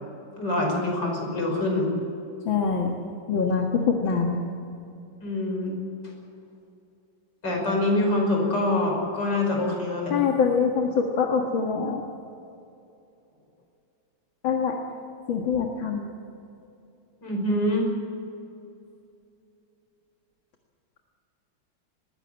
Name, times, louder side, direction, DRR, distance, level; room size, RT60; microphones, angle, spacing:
voice 1, 0.4-1.9 5.2-5.8 7.4-10.2 17.2-17.9, left 1 dB, 60° left, 0 dB, 6.2 m, -25 dB
voice 2, 2.5-3.0 3.3-4.4 10.1-12.0 14.4-14.7 15.3-16.1, left 5 dB, 80° left, 2 dB, 2.5 m, -24 dB
21.0 x 16.0 x 9.0 m, 2.6 s
omnidirectional pair, 2.1 m